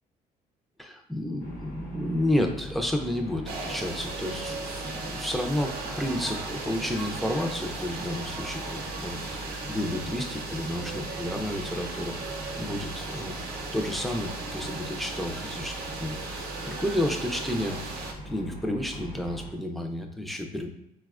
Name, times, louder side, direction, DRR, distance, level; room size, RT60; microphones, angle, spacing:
voice 1, 0.8-13.4 13.7-18.0 18.2-20.7, left 1 dB, ahead, 3 dB, 0.4 m, -31 dB
sound 1, 1.4-19.5, equal, 55° left, 0.8 m, -42 dB
sound 2, 3.4-18.1, right 3 dB, 65° right, 0.6 m, -37 dB
4.1 x 2.1 x 2.3 m, 0.80 s
cardioid pair, 110°, 17 cm